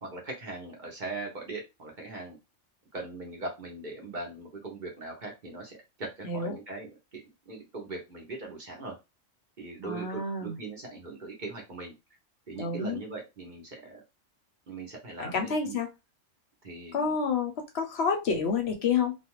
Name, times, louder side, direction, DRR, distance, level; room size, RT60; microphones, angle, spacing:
voice 1, 0.0-2.4 2.9-8.9 9.6-11.9 12.5-14.0 14.7-15.8 16.6-17.1, right 3 dB, 45° right, 0 dB, 0.8 m, -40 dB
voice 2, 6.2-6.5 9.8-10.5 12.6-13.0 15.2-15.9 16.9-19.1, left 5 dB, 65° left, 5 dB, 0.8 m, -29 dB
2.4 x 2.3 x 2.9 m, 0.24 s
omnidirectional pair, 1.3 m